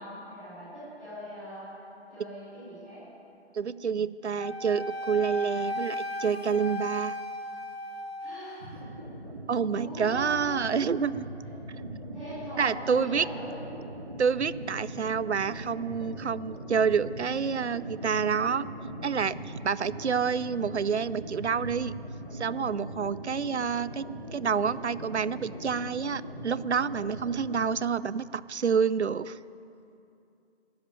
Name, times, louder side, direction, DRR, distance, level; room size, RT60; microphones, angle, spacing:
voice 1, 0.0-1.7 2.1-3.0 8.2-8.7 9.5-10.8 12.1-13.5, equal, ahead, -22 dB, 4.8 m, -41 dB
voice 2, 3.5-7.2 9.5-11.3 12.6-13.2 14.2-18.6 19.0-21.9 22.3-29.4, right 6 dB, 75° right, 18 dB, 0.6 m, -28 dB
Wind instrument woodwind instrument, 4.4-8.7, left 1 dB, 60° left, 1.1 m, -36 dB
sound 1, 8.6-27.6, right 1 dB, 30° right, 2.0 m, -41 dB
13.5 x 10.5 x 9.1 m, 2.6 s
figure-of-eight pair, 170°, 34 cm